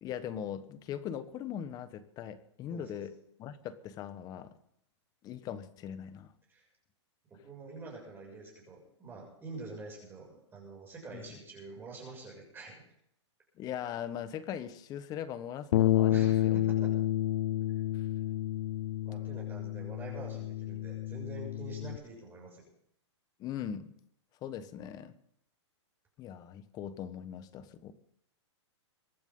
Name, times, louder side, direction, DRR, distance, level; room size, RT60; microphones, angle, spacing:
voice 1, 0.0-3.1 3.4-4.5 5.2-6.3 11.1-11.4 13.6-16.6 17.9-18.1 23.4-23.9 24.4-25.1 26.2-27.9, left 9 dB, 25° left, 13 dB, 1.3 m, -40 dB
voice 2, 2.7-3.0 6.5-6.6 7.3-12.8 16.1-16.9 19.0-22.7, right 3 dB, 15° right, -2 dB, 7.0 m, -46 dB
Bass guitar, 15.7-22.0, left 13 dB, 60° left, 0.7 m, -30 dB
24.0 x 12.0 x 3.9 m, 0.72 s
hypercardioid pair, 145°, 15 cm